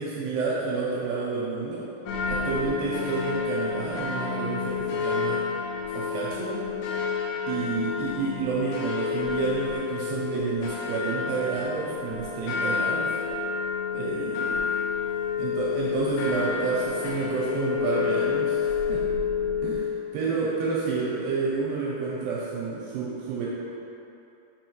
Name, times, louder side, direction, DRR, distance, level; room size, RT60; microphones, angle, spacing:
voice 1, 0.0-1.9 2.3-5.5 5.9-6.7 7.5-13.2 13.9-14.6 15.4-19.1 19.6-23.5, right 4 dB, 80° right, -6 dB, 2.5 m, -29 dB
sound 1, 2.1-19.9, left 6 dB, 80° left, 3.0 m, -29 dB
6.3 x 5.3 x 3.0 m, 2.9 s
omnidirectional pair, 5.4 m